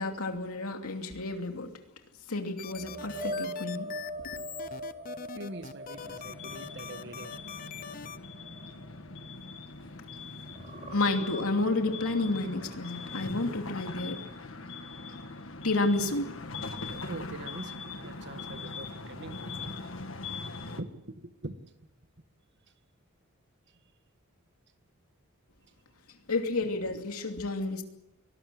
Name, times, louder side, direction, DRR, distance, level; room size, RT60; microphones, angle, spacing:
voice 1, 0.0-1.8 2.3-3.9 4.2-4.4 10.9-14.2 15.6-16.3 26.3-27.8, left 2 dB, 85° left, 2.7 m, -30 dB
sound 1, 2.6-8.2, left 7 dB, 40° left, 0.8 m, -43 dB
sound 2, 2.7-10.1 10.4-14.3 14.7-14.9 18.2-18.3, equal, 30° right, 4.6 m, -43 dB
voice 2, 5.3-7.4 17.1-19.8 20.8-21.6, right 2 dB, 55° right, 1.5 m, -43 dB
sound 3, 6.0-20.8, left 3 dB, 60° left, 1.7 m, -41 dB
24.0 x 19.0 x 7.7 m
head